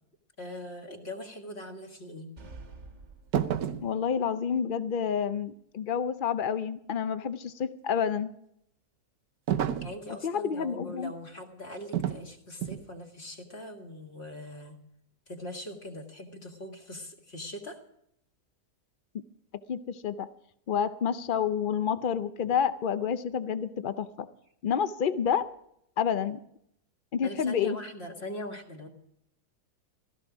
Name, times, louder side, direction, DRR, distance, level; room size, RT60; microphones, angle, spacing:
voice 1, 0.4-2.3 9.8-14.8 15.3-17.8 27.2-28.9, left 1 dB, 40° left, 2 dB, 1.9 m, -41 dB
sound 1, 2.4-4.0, right 3 dB, 45° right, 1.5 m, -48 dB
sound 2, 3.3-3.9 9.5-10.0 11.9-12.3 12.6-12.9, right 10 dB, 70° right, 1.2 m, -29 dB
voice 2, 3.8-8.3 10.2-11.1 19.1-19.2 19.7-20.3 20.7-24.3 24.6-25.5 26.0-26.4 27.1-27.8, left 7 dB, 80° left, 12 dB, 0.4 m, -29 dB
16.0 x 13.5 x 5.0 m, 0.72 s
omnidirectional pair, 1.7 m